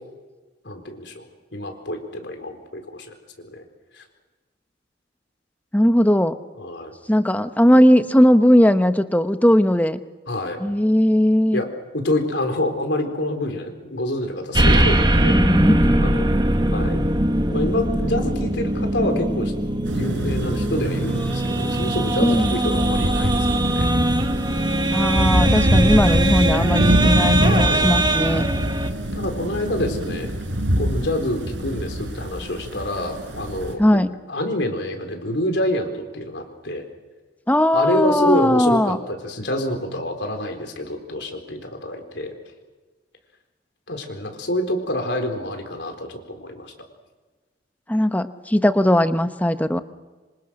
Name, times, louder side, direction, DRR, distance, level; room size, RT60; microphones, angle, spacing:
voice 1, 0.6-3.1 3.5-3.6 3.9-4.0 6.6-6.9 10.3-10.6 11.5-11.7 11.9-15.7 16.0-16.3 16.7-17.1 17.5-19.5 19.9-23.9 25.6-25.8 27.4-27.9 29.1-30.4 30.8-34.0 34.3-36.9 37.7-42.3 43.9-46.7, left 1 dB, 75° left, 5 dB, 4.3 m, -27 dB
voice 2, 5.7-6.3 7.1-10.0 10.6-11.6 15.3-15.9 22.2-22.6 24.9-28.5 33.8-34.1 37.5-39.0 47.9-49.8, equal, 10° left, 10 dB, 1.0 m, -18 dB
sound 1, 14.5-28.9, right 1 dB, 25° right, 1.4 m, -21 dB
sound 2, 19.8-33.7, equal, 85° right, 4.7 m, -24 dB
26.5 x 26.0 x 6.5 m, 1.3 s
head